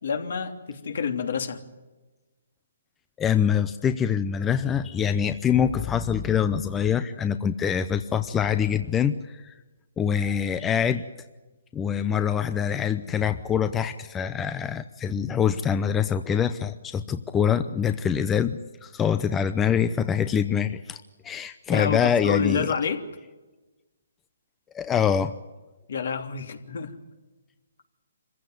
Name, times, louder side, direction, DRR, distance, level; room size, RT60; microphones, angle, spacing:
voice 1, 0.0-1.6 21.7-23.0 25.9-26.9, left 6 dB, 65° left, 6 dB, 3.1 m, -28 dB
voice 2, 3.2-9.5 10.0-11.0 11.7-22.7 24.7-25.3, left 8 dB, 15° left, 10 dB, 0.7 m, -25 dB
25.5 x 15.5 x 9.5 m, 1.2 s
hypercardioid pair, 155°, 0 cm